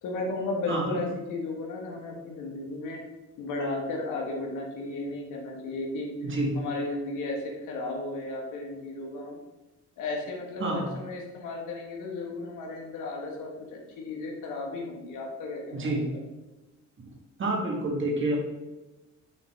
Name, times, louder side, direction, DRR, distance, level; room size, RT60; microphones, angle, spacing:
voice 1, 0.0-3.0 3.4-6.1 6.5-9.4 10.0-15.8, left 2 dB, 85° left, 0 dB, 1.4 m, -34 dB
voice 2, 0.7-1.0 6.2-6.5 10.6-10.9 15.7-16.0 17.4-18.4, right 2 dB, 40° right, -1 dB, 1.9 m, -28 dB
5.8 x 3.9 x 4.3 m, 1.1 s
cardioid pair, 90°, 30 cm